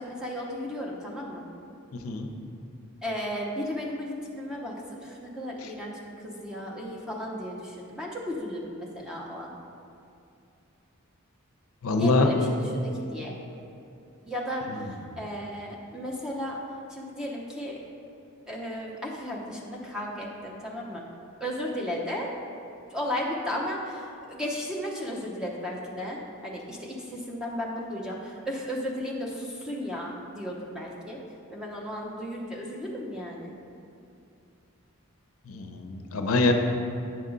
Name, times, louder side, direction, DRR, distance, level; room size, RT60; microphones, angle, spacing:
voice 1, 0.0-1.4 3.0-4.7 5.0-5.9 6.2-9.5 12.0-12.4 12.7-13.4 14.3-16.6 16.9-17.8 18.5-21.0 21.4-22.3 22.9-31.2 31.5-33.5, equal, 5° right, -3 dB, 0.8 m, -34 dB
voice 2, 1.9-2.3 5.6-5.7 11.8-12.3 14.7-15.2 35.5-36.5, left 3 dB, 85° left, 4 dB, 0.6 m, -25 dB
8.8 x 5.5 x 3.8 m, 2.7 s
head